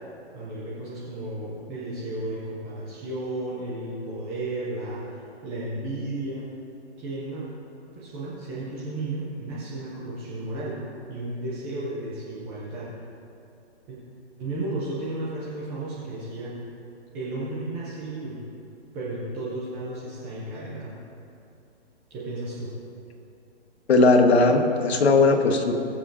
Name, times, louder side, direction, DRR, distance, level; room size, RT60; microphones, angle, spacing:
voice 1, 0.3-5.0 5.4-6.5 7.0-7.4 7.9-10.8 11.1-12.9 13.9-14.0 14.4-16.5 17.1-18.4 18.9-21.0 22.1-22.7, right 2 dB, 5° right, -8 dB, 0.3 m, -33 dB
voice 2, 23.9-25.7, left 3 dB, 70° left, 5 dB, 1.4 m, -18 dB
21.0 x 7.3 x 2.6 m, 2.6 s
hypercardioid pair, 140°, 33 cm